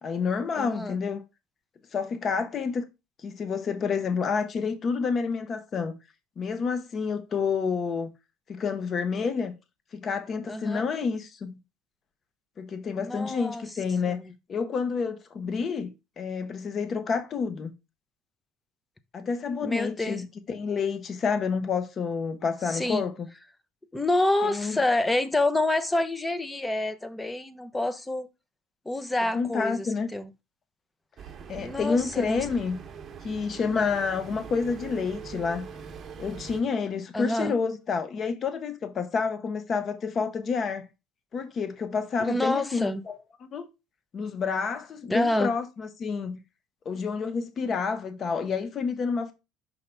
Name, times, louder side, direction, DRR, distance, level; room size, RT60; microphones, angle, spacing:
voice 1, 0.0-1.2 1.9-2.9 3.2-6.0 6.4-8.1 8.5-9.6 9.9-11.6 12.6-14.2 14.5-17.7 19.1-23.3 24.4-24.8 29.3-30.1 31.5-32.8 33.2-35.7 36.2-40.9 41.3-43.1 43.5-43.7 44.1-46.4 46.8-49.3, left 5 dB, 40° left, 1.2 m, -29 dB
voice 2, 0.6-1.0 10.5-10.8 13.0-13.6 14.1-14.2 19.6-20.2 22.7-23.0 23.9-28.3 28.9-30.3 31.6-32.4 37.1-37.5 42.2-43.0 45.1-45.5, left 2 dB, 10° left, 0.9 m, -27 dB
sound 1, 31.2-36.6, right 6 dB, 40° right, 1.1 m, -42 dB
5.6 x 5.4 x 3.4 m
supercardioid pair, 100°, 0 cm